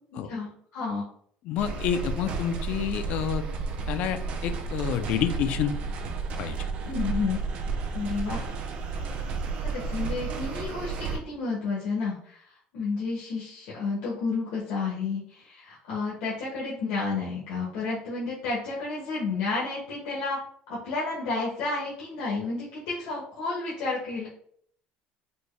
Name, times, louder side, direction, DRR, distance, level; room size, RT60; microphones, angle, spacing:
voice 1, 0.1-1.1 6.9-7.4 7.9-8.4 9.6-12.4 12.7-20.4 20.7-24.3, left 4 dB, 80° left, -6 dB, 1.1 m, -31 dB
voice 2, 1.5-3.4 3.9-5.7 6.4-6.6, left 8 dB, 50° left, 9 dB, 0.4 m, -28 dB
sound 1, 1.6-11.2, right 4 dB, 50° right, 0.5 m, -32 dB
4.3 x 2.2 x 3.2 m, 0.63 s
cardioid pair, 165°, 3 cm